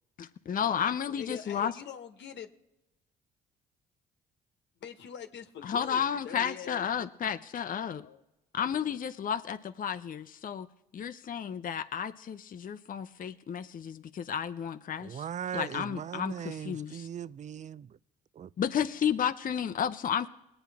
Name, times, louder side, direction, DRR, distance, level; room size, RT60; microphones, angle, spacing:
voice 1, 0.2-1.7 5.6-8.1 8.5-10.7 10.9-15.2 15.5-17.1 18.6-20.3, left 8 dB, 40° left, 0.7 m, -32 dB
voice 2, 1.1-2.5 4.8-6.9 7.7-8.2, left 8 dB, 60° left, 1.2 m, -44 dB
voice 3, 15.0-18.0 18.3-18.5, right 8 dB, 35° right, 0.4 m, -39 dB
21.5 x 8.9 x 3.5 m
hypercardioid pair, 50°, 21 cm